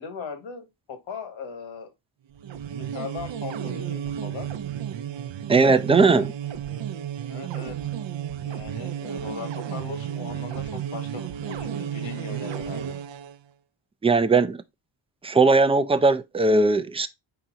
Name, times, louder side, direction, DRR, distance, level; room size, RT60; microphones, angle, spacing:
voice 1, 0.0-1.9 2.7-4.5 7.3-7.8 8.4-12.9, left 5 dB, 75° left, 1.4 m, -39 dB
sound 1, 2.3-13.4, right 9 dB, 70° right, 0.6 m, -33 dB
voice 2, 5.5-6.3 14.0-14.6 15.2-17.1, right 3 dB, 15° right, 0.3 m, -19 dB
4.6 x 2.9 x 3.8 m
cardioid pair, 65°, 47 cm